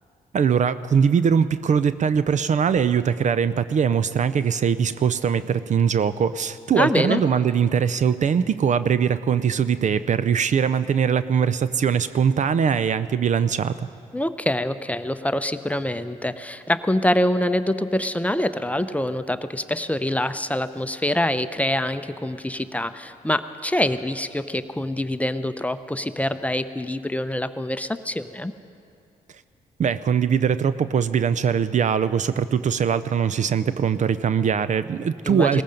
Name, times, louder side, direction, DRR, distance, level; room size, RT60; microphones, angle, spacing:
voice 1, 0.3-13.9 29.8-35.6, right 7 dB, 50° right, 14 dB, 0.5 m, -21 dB
voice 2, 6.7-7.2 14.1-28.5 35.2-35.6, left 1 dB, 10° left, 11 dB, 0.7 m, -25 dB
19.0 x 15.0 x 5.2 m, 2.4 s
supercardioid pair, 55°, 16 cm